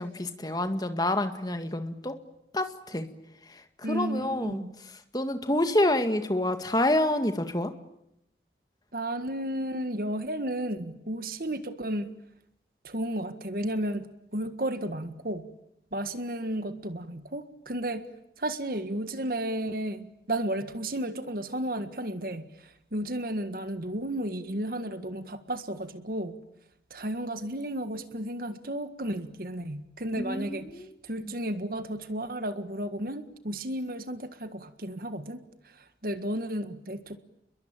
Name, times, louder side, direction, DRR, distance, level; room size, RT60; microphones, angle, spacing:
voice 1, 0.0-2.2 2.5-3.1 3.5-4.6 5.1-7.7 30.2-30.9 31.2-31.3, left 1 dB, 20° left, 8 dB, 1.9 m, -28 dB
voice 2, 3.8-4.7 8.9-12.1 12.8-15.4 15.9-18.1 18.4-26.4 26.9-37.2, right 1 dB, 55° right, 10 dB, 1.7 m, -33 dB
30.0 x 22.0 x 9.1 m, 0.81 s
head